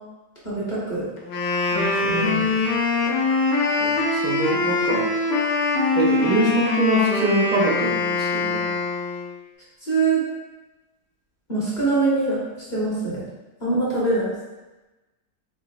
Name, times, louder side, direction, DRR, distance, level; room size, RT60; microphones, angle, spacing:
voice 1, 0.4-1.0 1.7-2.4 9.8-10.2 11.5-12.4 12.7-13.2 13.6-14.2, right 3 dB, 30° left, -9 dB, 1.3 m, -23 dB
Wind instrument woodwind instrument, 1.2-9.3, left 3 dB, 85° left, 1.3 m, -23 dB
voice 2, 3.8-5.1 5.9-8.7, right 2 dB, 80° right, -2 dB, 1.2 m, -24 dB
3.9 x 3.8 x 2.4 m, 1.1 s
omnidirectional pair, 1.8 m